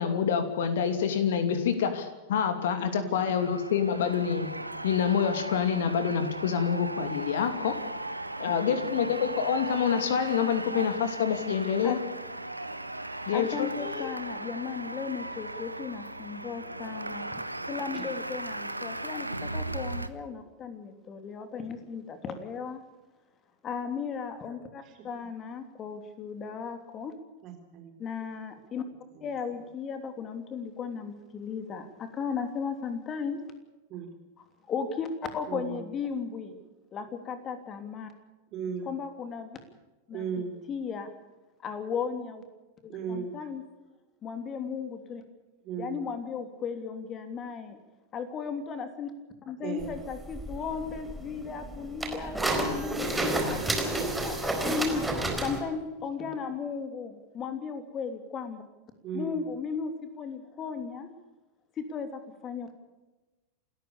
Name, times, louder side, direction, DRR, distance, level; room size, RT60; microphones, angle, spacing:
voice 1, 0.0-4.5 4.8-7.8 8.4-12.0 13.3-14.1, left 7 dB, 55° left, 9 dB, 2.7 m, -27 dB
voice 2, 2.8-3.4 8.6-9.1 17.9-18.1 27.4-27.9 29.2-29.3 33.9-34.1 35.5-35.8 38.5-38.9 40.1-40.6 42.9-43.3 45.6-46.0 49.6-50.0 59.0-59.4, right 7 dB, 35° right, 5 dB, 4.2 m, -37 dB
sound 1, 3.1-20.1, right 2 dB, 85° right, 1.1 m, -37 dB
voice 3, 13.3-17.2 17.7-22.8 23.6-27.1 28.0-28.8 29.2-33.4 34.7-35.1 35.3-36.6 36.9-38.1 38.8-39.6 40.1-41.1 41.6-42.4 42.8-43.6 44.2-45.2 45.8-47.8 48.1-49.1 49.4-55.0 55.4-58.6 59.1-61.1 61.8-62.7, left 6 dB, 25° left, 8 dB, 3.1 m, -36 dB
sound 2, 49.8-55.6, right 2 dB, 5° right, 4.2 m, -31 dB
28.0 x 14.0 x 7.0 m, 1.1 s
figure-of-eight pair, 90°, 0 cm